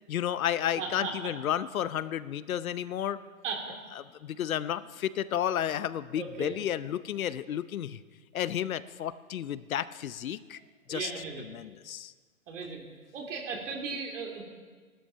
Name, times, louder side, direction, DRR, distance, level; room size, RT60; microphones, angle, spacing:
voice 1, 0.1-3.2 4.0-8.0 8.3-10.6 10.9-11.1 11.4-12.1, left 10 dB, 70° left, 15 dB, 0.8 m, -32 dB
voice 2, 0.8-1.1 3.4-3.7 6.2-6.5 10.9-11.5 12.5-12.8 13.1-14.4, right 5 dB, 55° right, 2 dB, 2.9 m, -36 dB
17.5 x 12.5 x 5.7 m, 1.5 s
hypercardioid pair, 155°, 44 cm